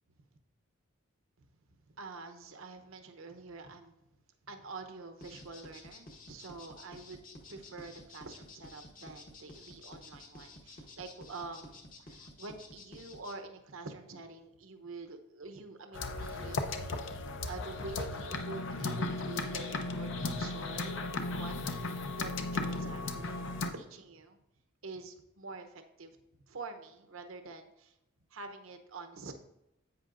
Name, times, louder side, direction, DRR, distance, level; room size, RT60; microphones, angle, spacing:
voice 1, 1.9-3.9 4.5-7.2 7.5-16.7 17.5-21.5 22.1-23.4 23.7-24.4 24.8-26.2 26.5-28.0 28.3-29.4, right 3 dB, 75° right, 7 dB, 0.8 m, -46 dB
sound 1, 5.2-13.3, left 2 dB, 40° left, 1.1 m, -51 dB
sound 2, 15.9-23.7, left 3 dB, 60° left, 0.7 m, -36 dB
10.5 x 8.2 x 2.6 m, 0.85 s
head